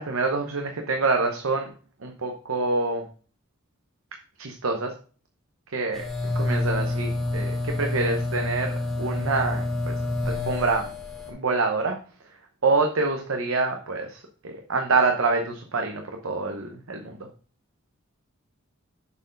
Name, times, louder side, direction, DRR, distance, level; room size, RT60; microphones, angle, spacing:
voice 1, 0.0-1.7 2.0-3.0 4.4-4.9 5.7-6.0 6.3-9.9 10.2-10.9 11.3-11.9 12.6-17.2, right 3 dB, 90° right, 3 dB, 0.8 m, -26 dB
sound 1, 5.9-11.3, left 2 dB, ahead, 1.9 m, -28 dB
7.0 x 4.5 x 5.2 m, 0.41 s
head